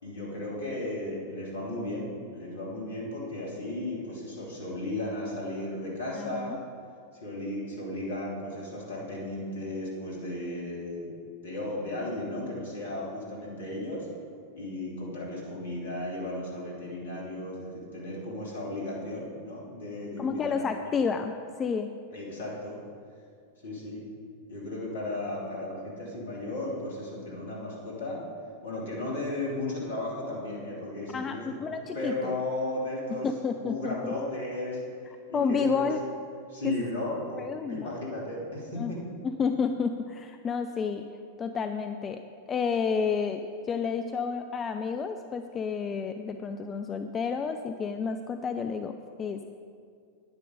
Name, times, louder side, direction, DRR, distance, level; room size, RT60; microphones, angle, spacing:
voice 1, 0.0-6.6 7.2-11.2 11.4-14.1 14.5-21.0 22.1-22.8 23.6-24.0 24.5-28.2 28.6-33.3 33.6-34.8 35.3-35.9 36.5-37.4 37.7-39.0, left 1 dB, 65° left, -4 dB, 3.0 m, -35 dB
voice 2, 6.2-6.6 20.2-21.9 31.1-32.3 33.1-34.1 35.3-36.0 36.6-36.8 37.3-37.9 38.8-38.9 39.2-41.1 41.4-42.2 42.5-49.4, left 5 dB, 25° left, 7 dB, 0.4 m, -30 dB
10.0 x 9.7 x 5.1 m, 2.3 s
figure-of-eight pair, 90°, 0 cm